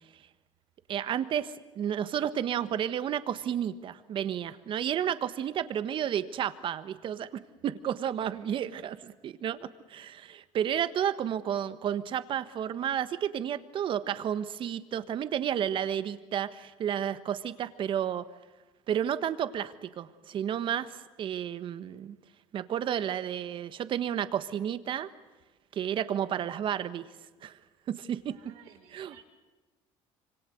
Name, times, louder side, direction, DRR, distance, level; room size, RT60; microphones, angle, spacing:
voice 1, 0.9-18.3 18.9-22.2 22.5-25.1 25.7-27.0 27.4-27.6 27.9-28.4 28.9-29.2, right 9 dB, 50° right, 13 dB, 1.5 m, -32 dB
voice 2, 28.3-29.2, right 9 dB, 80° right, 3 dB, 5.3 m, -56 dB
26.5 x 25.0 x 7.9 m, 1.2 s
cardioid pair, 110°, 11 cm